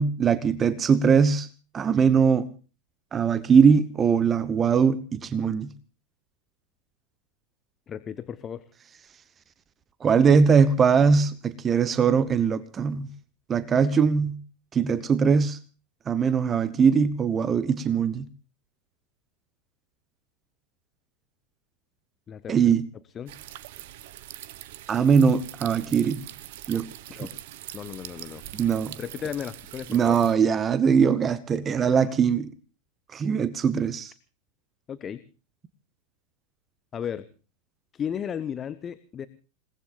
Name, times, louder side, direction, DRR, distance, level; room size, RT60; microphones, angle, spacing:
voice 1, 0.0-1.5 1.7-2.5 3.1-5.7 10.0-13.1 13.5-14.4 14.7-15.6 16.1-18.3 22.5-22.8 24.9-26.3 26.7-26.9 28.5-28.9 29.9-32.5 33.1-34.1, right 6 dB, 20° right, 1.0 m, -21 dB
voice 2, 7.9-8.7 22.3-22.7 23.1-23.3 27.1-27.3 27.7-28.4 29.0-30.2 31.8-31.9 34.9-35.2 36.9-37.3 37.9-39.3, left 8 dB, 25° left, 1.0 m, -35 dB
sound 1, 23.3-30.3, right 14 dB, 50° right, 1.1 m, -42 dB
28.5 x 19.0 x 2.5 m
figure-of-eight pair, 90°, 0 cm